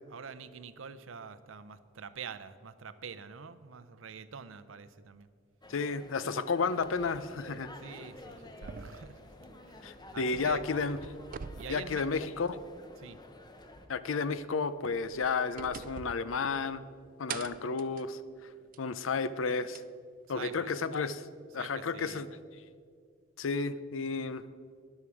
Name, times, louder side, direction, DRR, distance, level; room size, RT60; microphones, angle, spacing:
voice 1, 0.1-5.3 7.7-9.3 10.1-10.6 11.6-12.0 13.0-13.2 20.3-20.8 21.6-22.2, right 6 dB, 85° right, 14 dB, 0.6 m, -45 dB
sound 1, 5.6-13.9, left 1 dB, 20° left, 0.8 m, -51 dB
voice 2, 5.7-7.7 9.8-11.0 11.7-12.6 13.9-16.8 17.2-18.2 18.8-19.8 20.3-21.3 21.5-22.3 23.4-24.4, left 4 dB, 85° left, 15 dB, 0.6 m, -32 dB
sound 2, 8.6-10.4 10.7-12.7 13.1-13.2 14.8-16.9 17.3-19.0 19.7-19.8 20.9-21.0, right 6 dB, 45° right, 0.4 m, -46 dB
13.0 x 11.0 x 4.9 m, 2.1 s
head